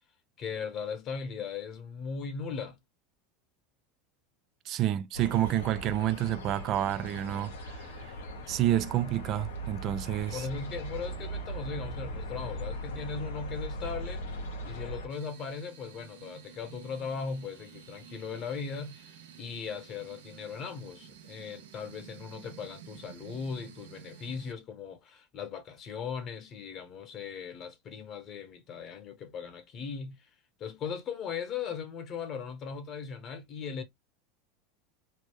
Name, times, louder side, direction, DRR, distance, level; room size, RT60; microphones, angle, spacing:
voice 1, 0.4-2.8 10.3-14.4 14.6-30.3 30.6-33.8, left 6 dB, 45° left, 1.1 m, -38 dB
voice 2, 4.7-8.2 8.5-10.5, right 12 dB, 50° right, 0.3 m, -29 dB
sound 1, 5.1-15.1, right 1 dB, 85° left, 1.1 m, -39 dB
sound 2, 15.1-24.5, right 8 dB, 80° right, 0.7 m, -51 dB
3.3 x 2.0 x 3.1 m
hypercardioid pair, 105°, 0 cm